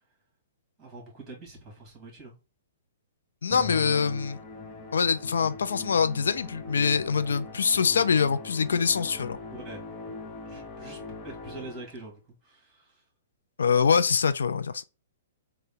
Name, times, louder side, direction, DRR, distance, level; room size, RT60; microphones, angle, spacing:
voice 1, 0.8-2.4 9.5-9.8 10.5-13.0, right 2 dB, 20° right, 2.1 m, -44 dB
voice 2, 3.4-4.4 4.9-9.4 13.6-14.8, left 6 dB, 85° left, 0.3 m, -24 dB
Musical instrument, 3.5-12.0, left 4 dB, 20° left, 0.7 m, -41 dB
3.9 x 2.2 x 3.6 m
hypercardioid pair, 140°, 0 cm